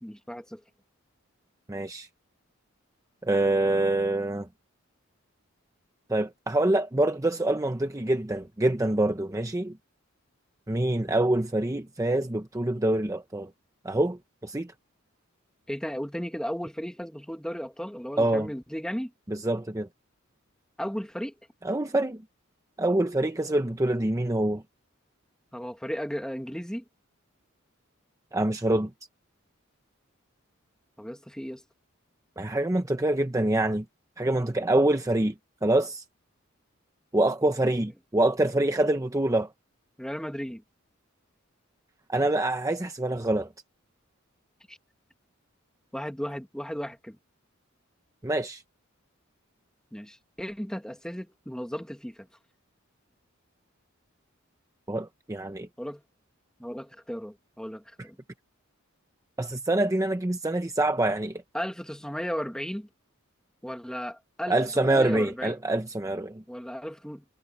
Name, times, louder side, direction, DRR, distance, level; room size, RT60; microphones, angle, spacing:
voice 1, 0.0-0.6 15.7-19.1 20.8-21.3 25.5-26.8 31.0-31.6 40.0-40.6 44.7-44.8 45.9-47.2 49.9-52.3 55.8-56.0 56.6-58.2 61.5-62.9 63.6-65.6 66.5-67.2, equal, 5° left, 1.9 m, -35 dB
voice 2, 1.7-2.1 3.2-4.5 6.1-9.8 10.7-13.5 13.8-14.7 18.2-18.5 19.3-19.9 21.6-22.2 22.8-24.6 28.3-28.9 32.4-33.8 34.2-35.3 35.6-36.0 37.1-39.5 42.1-43.5 48.2-48.6 54.9-55.7 59.4-61.4 64.5-66.4, right 1 dB, 15° right, 0.8 m, -25 dB
head